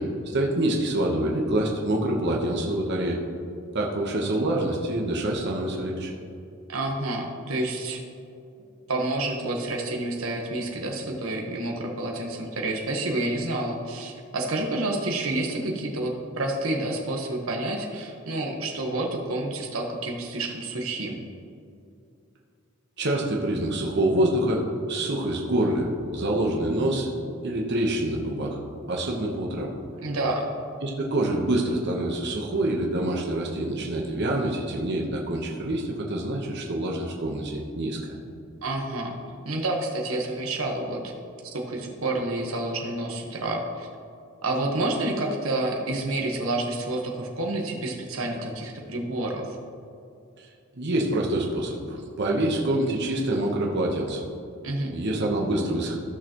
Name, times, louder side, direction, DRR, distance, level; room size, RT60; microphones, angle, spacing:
voice 1, 0.0-3.2 3.7-6.1 23.0-27.1 27.4-28.6 28.9-29.7 30.8-38.1 50.4-50.5 50.7-54.2 54.9-56.0, right 1 dB, 55° right, -1 dB, 1.1 m, -26 dB
voice 2, 6.7-8.0 8.9-21.2 30.0-30.5 38.6-39.2 39.4-41.1 41.5-43.9 44.4-49.6 54.6-54.9, right 2 dB, 85° right, 1 dB, 1.2 m, -29 dB
15.0 x 6.5 x 3.0 m, 2.5 s
head